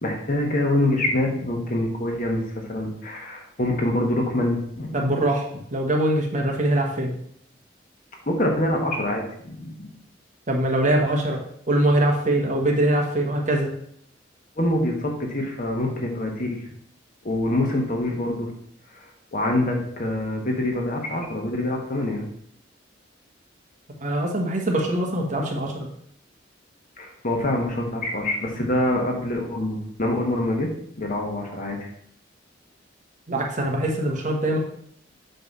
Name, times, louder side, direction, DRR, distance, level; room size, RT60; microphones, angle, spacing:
voice 1, 0.0-5.0 8.3-9.9 14.6-16.6 17.2-18.5 18.9-19.0 19.3-22.2 27.0-30.7 31.0-31.9, left 1 dB, 50° left, 1 dB, 1.4 m, -25 dB
voice 2, 4.9-7.1 10.5-11.4 11.7-13.7 24.0-25.9 33.3-34.6, right 1 dB, 40° right, 0 dB, 1.3 m, -23 dB
8.0 x 3.3 x 5.4 m, 0.67 s
head